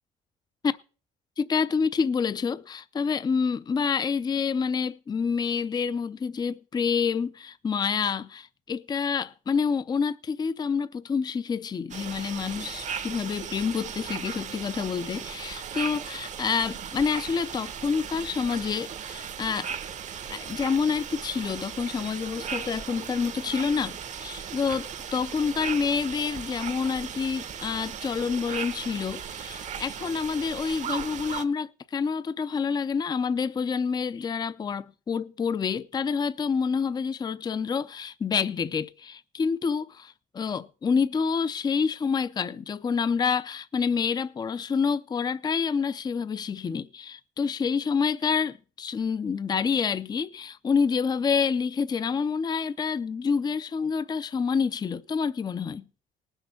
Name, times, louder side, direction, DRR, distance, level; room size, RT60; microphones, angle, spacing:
voice 1, 1.4-19.7 20.3-55.8, left 6 dB, 25° left, 0.5 m, -28 dB
sound 1, 11.9-31.4, right 7 dB, 45° right, 0.9 m, -37 dB
19.0 x 6.4 x 5.8 m
cardioid pair, 110°, 17 cm